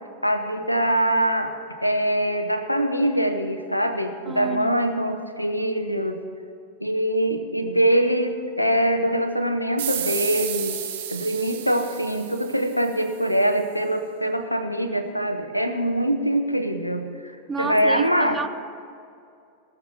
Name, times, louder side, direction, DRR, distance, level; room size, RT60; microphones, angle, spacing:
voice 1, 0.2-1.5 1.8-6.2 6.8-10.8 11.1-17.3 17.6-18.4, right 1 dB, 90° left, 0.9 m, -23 dB
voice 2, 4.2-4.7 17.5-18.5, right 5 dB, 15° right, 0.5 m, -30 dB
sound 1, 9.8-13.1, right 9 dB, 60° right, 1.3 m, -32 dB
19.0 x 6.9 x 7.3 m
figure-of-eight pair, 90°, 0 cm